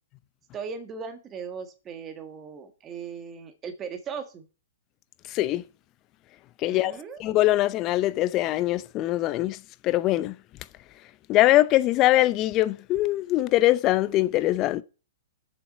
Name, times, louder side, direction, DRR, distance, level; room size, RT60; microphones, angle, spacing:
voice 1, 0.5-4.4 6.6-7.2, right 6 dB, 25° right, 1.5 m, -38 dB
voice 2, 5.3-5.6 6.6-6.9 7.2-9.6 9.8-10.4 11.3-14.8, left 16 dB, 30° left, 0.6 m, -22 dB
7.1 x 6.9 x 5.5 m
figure-of-eight pair, 115°, 0 cm